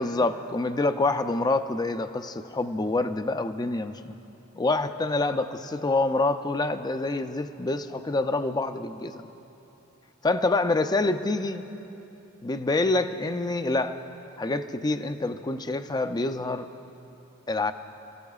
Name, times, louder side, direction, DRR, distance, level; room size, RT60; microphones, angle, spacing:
voice 1, 0.0-4.1 4.6-9.3 10.2-11.7 12.4-14.0 14.4-16.7 17.5-17.7, left 2 dB, 20° left, 9 dB, 0.4 m, -26 dB
27.0 x 15.0 x 2.4 m, 2.9 s
head